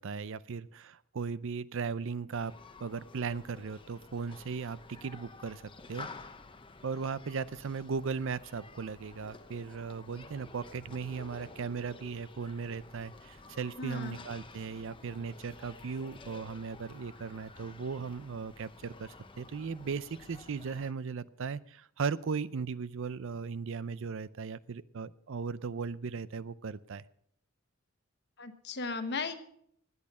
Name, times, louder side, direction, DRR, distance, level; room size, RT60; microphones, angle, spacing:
voice 1, 0.0-2.5 2.8-5.6 5.9-6.1 6.8-27.0, right 5 dB, 65° right, 17 dB, 0.5 m, -37 dB
Human group actions, 2.3-20.9, left 3 dB, 25° left, 0.9 m, -51 dB
voice 2, 13.8-14.2 28.4-29.3, left 4 dB, 55° left, 9 dB, 1.3 m, -36 dB
19.0 x 8.6 x 5.5 m, 0.67 s
head